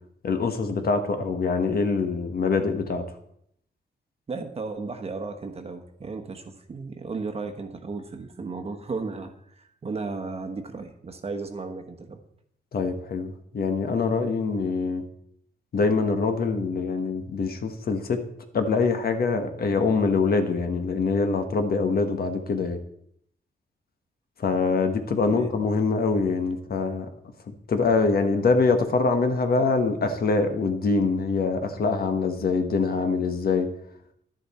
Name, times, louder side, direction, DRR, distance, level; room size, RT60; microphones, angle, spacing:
voice 1, 0.2-3.0 12.7-15.0 15.7-18.2 18.5-22.8 24.4-27.1 27.5-33.7, left 4 dB, 55° left, 7 dB, 1.3 m, -24 dB
voice 2, 4.3-12.2 25.2-25.5, right 4 dB, 35° right, 6 dB, 1.1 m, -35 dB
11.5 x 10.5 x 4.3 m, 0.72 s
wide cardioid pair, 165°, 19 cm